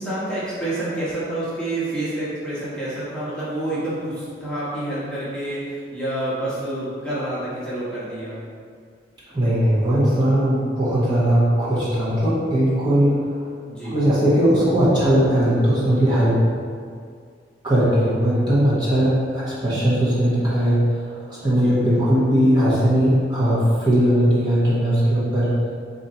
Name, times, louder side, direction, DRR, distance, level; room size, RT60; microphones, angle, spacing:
voice 1, 0.0-8.4 13.7-14.0 21.6-21.7, right 1 dB, 5° left, -11 dB, 1.2 m, -28 dB
voice 2, 9.3-13.5 13.8-16.4 17.6-25.5, equal, 25° right, -11 dB, 1.0 m, -19 dB
4.0 x 2.6 x 4.2 m, 2.1 s
head